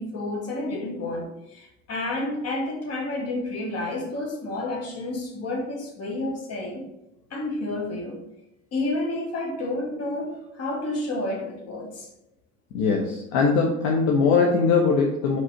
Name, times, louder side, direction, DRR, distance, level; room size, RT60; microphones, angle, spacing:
voice 1, 0.0-6.8 7.3-8.2 8.7-12.1, left 2 dB, 40° left, 1 dB, 1.9 m, -30 dB
voice 2, 12.7-15.4, left 4 dB, 60° left, -1 dB, 1.0 m, -21 dB
5.0 x 4.1 x 5.0 m, 0.88 s
figure-of-eight pair, 65°, 37 cm